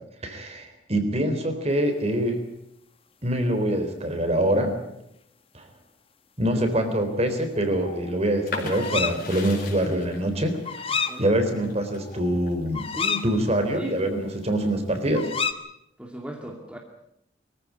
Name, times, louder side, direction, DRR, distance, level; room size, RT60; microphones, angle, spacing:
voice 1, 0.2-2.4 3.2-4.7 5.5-5.7 6.4-12.9 13.2-15.3, right 1 dB, 35° right, 7 dB, 3.8 m, -25 dB
sound 1, 7.6-8.2 8.7-9.2 10.6-11.2 11.6-11.7 12.0-13.3 15.1-15.5, left 6 dB, 30° left, 1.3 m, -29 dB
sound 2, 8.5-14.1 14.5-15.4, left 4 dB, 50° left, 4.7 m, -39 dB
voice 2, 10.9-11.7 12.9-13.3 13.7-13.9 16.0-16.8, equal, 5° right, 0 dB, 2.3 m, -37 dB
24.0 x 15.0 x 9.8 m, 0.81 s
head